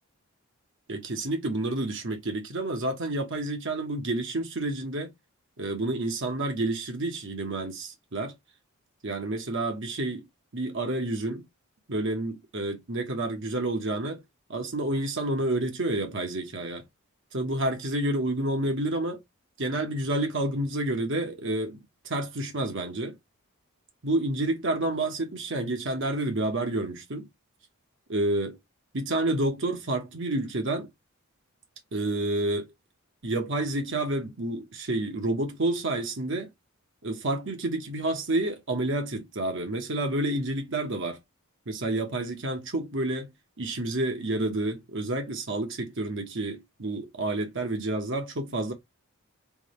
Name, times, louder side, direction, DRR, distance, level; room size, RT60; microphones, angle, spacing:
voice 1, 0.9-5.1 5.6-8.3 9.0-10.3 10.5-11.4 11.9-14.2 14.5-16.8 17.3-19.2 19.6-23.1 24.0-27.3 28.1-28.6 28.9-30.9 31.9-32.7 33.2-36.5 37.0-41.2 41.7-43.3 43.6-48.7, right 2 dB, 60° right, 1.2 m, -29 dB
3.6 x 2.8 x 3.2 m
head